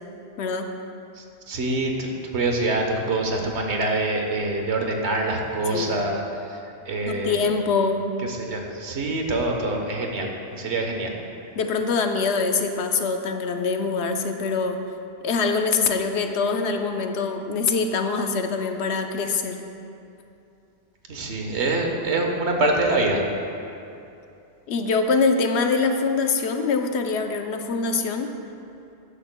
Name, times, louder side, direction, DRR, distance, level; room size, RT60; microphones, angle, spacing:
voice 1, 1.2-7.4 8.2-11.2 21.1-23.2, right 2 dB, 75° right, 2 dB, 1.3 m, -25 dB
voice 2, 7.1-8.1 11.6-14.8 15.2-19.6 24.7-28.3, left 4 dB, 75° left, 5 dB, 0.9 m, -24 dB
13.0 x 9.9 x 2.2 m, 2.7 s
omnidirectional pair, 1.1 m